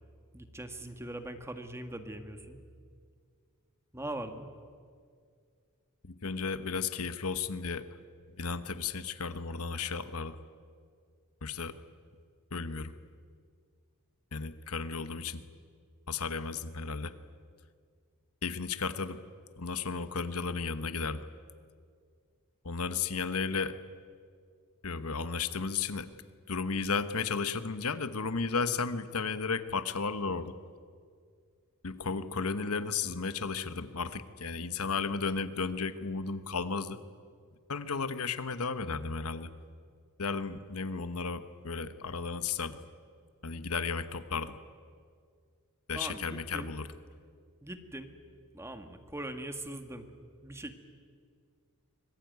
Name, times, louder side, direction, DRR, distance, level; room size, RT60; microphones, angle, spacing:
voice 1, 0.3-2.6 3.9-4.5 45.9-46.7 47.6-48.1 48.5-50.1 50.4-50.7, right 1 dB, 10° right, 7 dB, 1.7 m, -41 dB
voice 2, 6.0-7.9 8.4-10.4 11.4-11.7 12.5-12.9 14.3-15.4 16.1-17.1 18.4-19.2 19.6-21.2 22.6-23.8 24.8-26.1 26.5-30.5 31.8-37.0 37.7-39.5 40.2-42.8 43.4-44.5 45.9-46.9, left 5 dB, 80° left, 12 dB, 1.1 m, -34 dB
25.0 x 21.0 x 9.4 m, 2.1 s
head